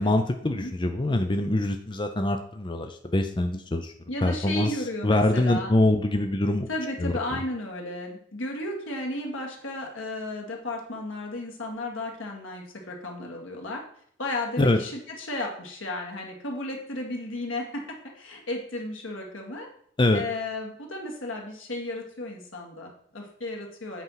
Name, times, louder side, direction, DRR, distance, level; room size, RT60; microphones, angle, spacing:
voice 1, 0.0-3.9 4.2-4.7 5.0-6.7 7.0-7.1 14.6-14.8 20.0-20.2, left 1 dB, 25° left, 6 dB, 0.5 m, -24 dB
voice 2, 4.1-5.7 6.7-13.8 14.2-19.7 20.1-24.0, left 1 dB, 90° left, 1 dB, 2.1 m, -34 dB
8.2 x 4.5 x 5.7 m, 0.63 s
head